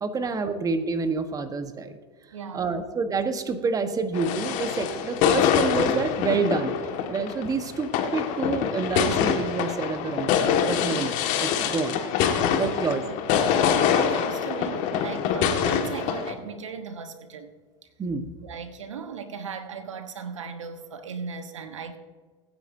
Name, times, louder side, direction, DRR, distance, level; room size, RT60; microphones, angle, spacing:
voice 1, 0.0-1.9 2.5-6.7 7.1-12.0 12.6-13.0 18.0-18.3, right 4 dB, 20° right, 8 dB, 1.3 m, -28 dB
voice 2, 2.3-2.8 10.9-11.1 12.4-13.2 13.5-17.5 18.4-22.0, right 5 dB, 85° right, 8 dB, 1.2 m, -37 dB
sound 1, 4.1-16.3, left 8 dB, 55° left, 1.9 m, -25 dB
24.5 x 9.4 x 2.8 m, 1.5 s
hypercardioid pair, 95°, 16 cm